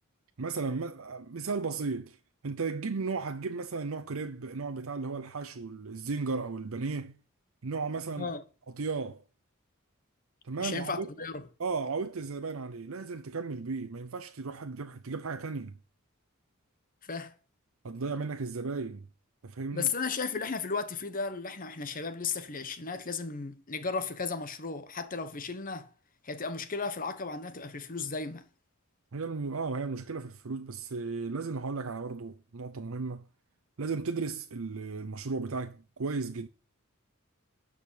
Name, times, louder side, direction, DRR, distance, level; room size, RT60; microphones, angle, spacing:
voice 1, 0.4-2.2 2.4-7.2 7.6-8.3 8.8-9.2 10.4-11.1 11.6-15.7 17.8-19.1 19.4-19.9 29.1-33.3 33.8-36.5, right 4 dB, 75° right, 0.7 m, -35 dB
voice 2, 10.6-11.4 17.0-17.3 19.7-25.9 26.2-28.4, left 4 dB, 40° left, 1.1 m, -35 dB
12.0 x 5.1 x 8.4 m
head